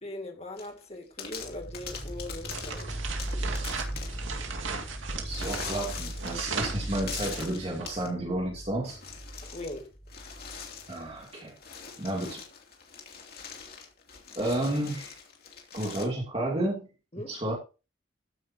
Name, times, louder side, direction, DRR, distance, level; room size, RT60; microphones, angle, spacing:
voice 1, 0.0-3.0 9.4-9.9 17.1-17.3, left 1 dB, 30° left, 2.1 m, -40 dB
sound 1, 0.6-0.8 1.2-4.3 5.3-6.5 6.8-8.1 8.8-9.8 10.1-16.1, left 6 dB, 50° left, 2.9 m, -42 dB
sound 2, 1.4-11.2, right 1 dB, 10° left, 5.7 m, -39 dB
sound 3, 2.5-8.0, right 5 dB, 80° right, 2.4 m, -37 dB
voice 2, 5.1-9.0 10.9-11.5 12.0-12.4 14.4-15.2 15.7-16.9 17.3-17.5, right 1 dB, 30° right, 2.8 m, -31 dB
14.5 x 9.4 x 2.9 m
head